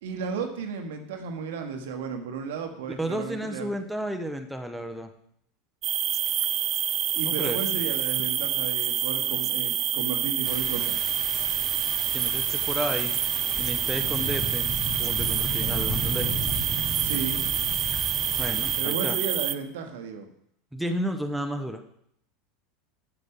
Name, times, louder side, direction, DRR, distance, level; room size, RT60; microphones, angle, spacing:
voice 1, 0.0-3.7 7.1-11.0 17.0-17.4 18.8-20.3, right 5 dB, 65° right, 5 dB, 1.2 m, -34 dB
voice 2, 3.0-5.1 7.2-7.6 12.0-13.1 13.6-14.7 15.0-16.3 18.4-19.2 20.7-21.8, equal, 5° right, 5 dB, 0.9 m, -32 dB
sound 1, 5.8-19.6, right 11 dB, 40° right, 0.5 m, -27 dB
sound 2, 10.4-18.8, left 1 dB, 30° left, 3.3 m, -35 dB
11.5 x 6.5 x 3.7 m, 0.70 s
figure-of-eight pair, 80°, 0 cm